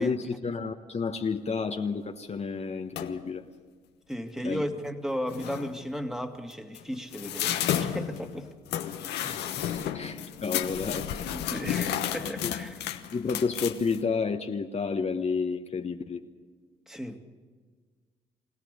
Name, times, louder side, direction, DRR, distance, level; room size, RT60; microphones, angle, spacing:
voice 1, 0.0-3.4 4.4-4.6 9.2-11.3 12.4-12.5 13.1-16.2, left 5 dB, 40° left, 1.2 m, -31 dB
sound 1, 3.0-3.3 4.9-5.0 5.3-5.8 6.5-14.0, left 10 dB, 75° left, 1.1 m, -32 dB
voice 2, 4.1-8.5 9.8-9.9 11.3-12.8 16.9-17.2, equal, 5° right, 2.2 m, -35 dB
24.0 x 17.5 x 6.7 m
hypercardioid pair, 50°, 17 cm